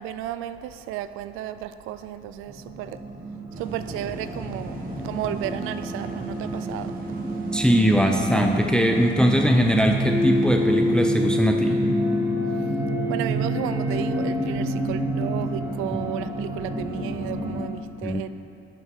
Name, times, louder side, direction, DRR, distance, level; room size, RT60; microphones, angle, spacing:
voice 1, 0.0-3.0 3.6-6.9 12.6-12.8 13.1-18.3, right 12 dB, 85° right, 13 dB, 0.4 m, -33 dB
sound 1, 2.5-17.6, equal, 15° right, 1.1 m, -27 dB
sound 2, 3.5-12.3, right 2 dB, 45° right, 1.5 m, -40 dB
voice 2, 7.5-11.8 18.0-18.2, equal, 5° left, 3 dB, 0.6 m, -21 dB
11.0 x 6.1 x 3.7 m, 2.8 s
cardioid pair, 85°, 21 cm